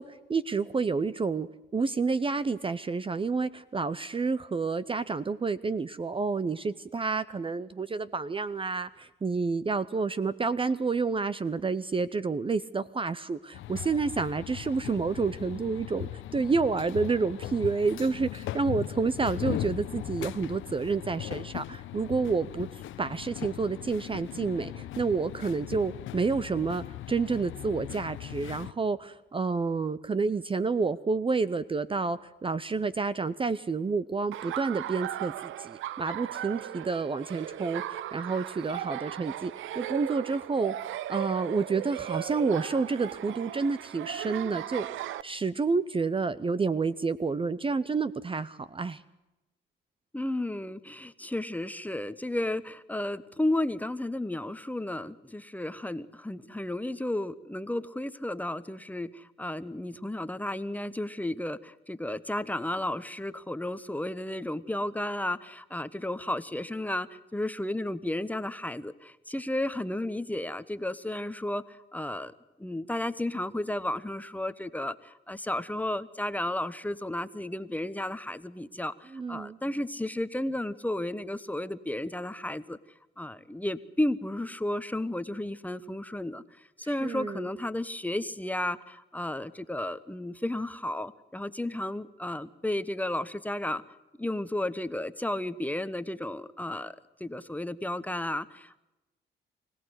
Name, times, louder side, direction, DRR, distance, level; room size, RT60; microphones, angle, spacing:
voice 1, 0.0-1.5 1.7-49.0 79.1-79.6 87.0-87.5, right 4 dB, 25° right, 15 dB, 0.7 m, -29 dB
sound 1, 13.5-28.7, left 13 dB, 80° left, 0.9 m, -39 dB
Laughter, 34.3-45.2, right 12 dB, 80° right, 0.7 m, -37 dB
voice 2, 50.1-72.3 72.6-82.8 83.2-93.8 94.2-98.8, left 1 dB, 10° left, 13 dB, 1.0 m, -33 dB
25.0 x 17.0 x 8.1 m, 1.0 s
cardioid pair, 90°, 20 cm